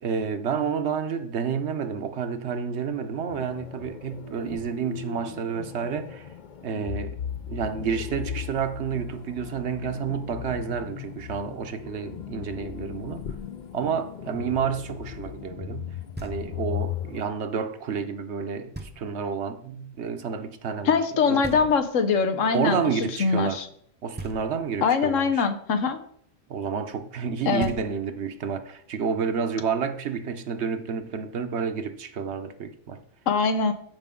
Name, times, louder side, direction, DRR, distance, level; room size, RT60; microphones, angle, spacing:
voice 1, 0.0-6.3 6.6-7.1 7.5-13.2 13.7-15.9 16.2-21.0 21.3-21.7 22.5-23.6 24.0-25.5 26.5-33.0, right 6 dB, 65° right, 1.0 m, -30 dB
sound 1, 3.3-17.2, left 9 dB, 60° left, 0.5 m, -37 dB
Knock, 16.1-16.8 18.7-19.4 21.4-22.2 24.1-24.9 27.2-27.3 27.6-28.4, right 2 dB, 10° right, 0.7 m, -41 dB
voice 2, 20.8-22.8 23.2-23.7 24.8-26.0 27.5-27.7 33.3-33.7, left 5 dB, 90° left, 1.3 m, -22 dB
14.0 x 4.9 x 3.7 m
omnidirectional pair, 1.3 m